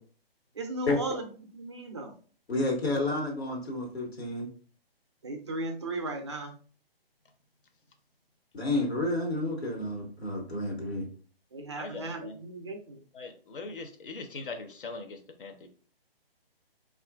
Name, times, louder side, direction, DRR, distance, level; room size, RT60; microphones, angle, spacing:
voice 1, 0.5-2.2 5.2-6.5 11.5-13.0, right 2 dB, 30° right, 4 dB, 0.4 m, -36 dB
voice 2, 2.5-4.5 8.5-11.1, left 2 dB, 90° left, 0 dB, 1.2 m, -30 dB
voice 3, 11.8-12.4 13.1-15.7, left 3 dB, 60° left, 6 dB, 0.7 m, -41 dB
3.8 x 2.4 x 2.2 m, 0.41 s
hypercardioid pair, 150°, 31 cm